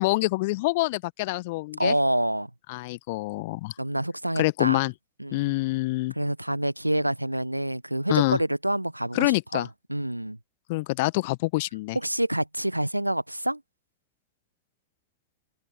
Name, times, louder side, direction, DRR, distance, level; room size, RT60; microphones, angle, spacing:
voice 1, 0.0-1.9 2.7-3.7 4.4-4.9 5.3-6.1 8.1-8.4 9.1-9.7 10.7-12.0, left 22 dB, 50° left, 1.3 m, -26 dB
voice 2, 1.8-2.5 3.8-4.8 5.2-5.5 6.2-10.4 11.9-13.6, right 1 dB, 85° right, 1.1 m, -27 dB
figure-of-eight pair, 90°, 0 cm